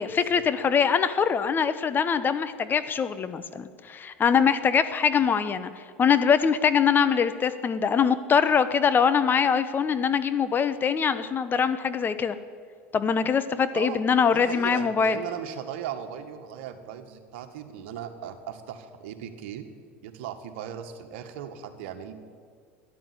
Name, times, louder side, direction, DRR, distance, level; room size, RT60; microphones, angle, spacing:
voice 1, 0.0-5.7 6.0-12.4 12.9-15.2, left 6 dB, 30° left, 12 dB, 1.0 m, -23 dB
voice 2, 13.7-14.0 14.3-19.7 20.0-22.1, right 9 dB, 65° right, 7 dB, 1.6 m, -37 dB
13.5 x 11.0 x 9.9 m, 2.1 s
hypercardioid pair, 80°, 6 cm